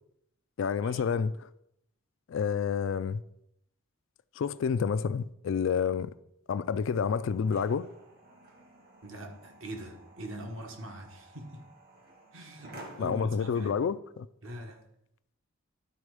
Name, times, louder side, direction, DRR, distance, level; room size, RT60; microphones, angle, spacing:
voice 1, 0.6-1.5 2.3-3.2 4.4-6.1 6.5-7.9 13.0-14.3, left 6 dB, 60° left, 0.3 m, -29 dB
sound 1, 6.6-13.4, right 1 dB, 45° right, 1.4 m, -53 dB
voice 2, 9.0-11.7 12.3-13.8 14.4-14.8, right 1 dB, 65° right, 1.3 m, -43 dB
11.0 x 4.3 x 4.8 m
head